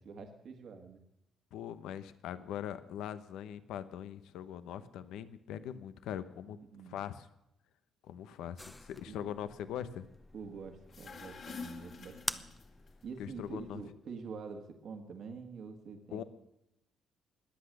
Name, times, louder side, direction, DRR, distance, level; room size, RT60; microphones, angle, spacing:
voice 1, 0.1-1.0 6.6-7.0 9.1-9.3 10.3-12.5 13.0-16.2, right 5 dB, 65° right, 4 dB, 1.8 m, -46 dB
voice 2, 1.5-6.6 6.9-7.3 8.0-10.0 13.2-13.8 16.1-16.2, left 10 dB, 85° left, 13 dB, 0.9 m, -41 dB
sound 1, 8.6-13.8, left 1 dB, 10° left, 0.7 m, -46 dB
sound 2, 10.8-12.9, left 5 dB, 55° left, 2.9 m, -47 dB
20.5 x 8.0 x 6.6 m, 0.85 s
cardioid pair, 90°, 0 cm